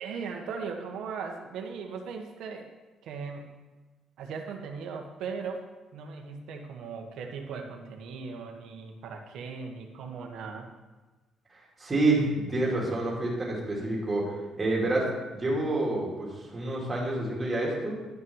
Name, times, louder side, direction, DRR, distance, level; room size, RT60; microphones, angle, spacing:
voice 1, 0.0-2.7 3.0-3.4 4.2-5.6 5.9-10.7, right 5 dB, 70° right, 3 dB, 1.4 m, -38 dB
voice 2, 11.5-17.9, right 2 dB, 20° right, -4 dB, 2.7 m, -28 dB
11.0 x 5.8 x 5.6 m, 1.2 s
cardioid pair, 155°, 0 cm